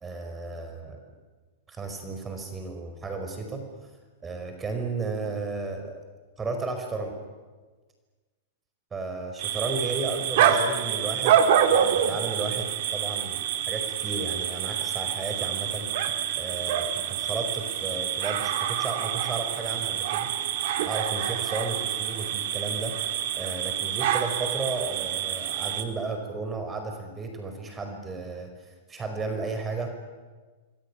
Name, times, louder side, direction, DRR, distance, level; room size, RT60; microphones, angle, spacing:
voice 1, 0.0-1.0 1.7-3.9 4.2-5.9 6.4-7.1 8.9-15.9 16.4-20.3 20.8-23.0 23.3-29.9, right 3 dB, 20° right, 5 dB, 5.1 m, -34 dB
sound 1, 9.4-25.8, right 9 dB, 60° right, 2.7 m, -27 dB
27.5 x 21.5 x 9.9 m, 1.4 s
hypercardioid pair, 115°, 0 cm